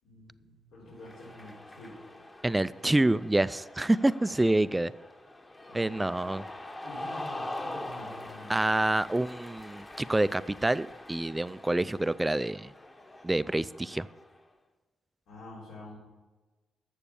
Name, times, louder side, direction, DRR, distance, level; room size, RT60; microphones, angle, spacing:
voice 1, 0.0-2.0 5.6-6.4 6.8-8.6 15.3-16.0, left 1 dB, 85° left, -9 dB, 4.6 m, -47 dB
Cheering, 0.9-14.4, left 1 dB, 20° left, 1.0 m, -44 dB
voice 2, 2.4-4.9 5.7-6.4 8.5-12.7 13.2-14.1, right 2 dB, 10° right, 17 dB, 0.3 m, -27 dB
11.5 x 7.3 x 7.0 m, 1.2 s
cardioid pair, 90°, 0 cm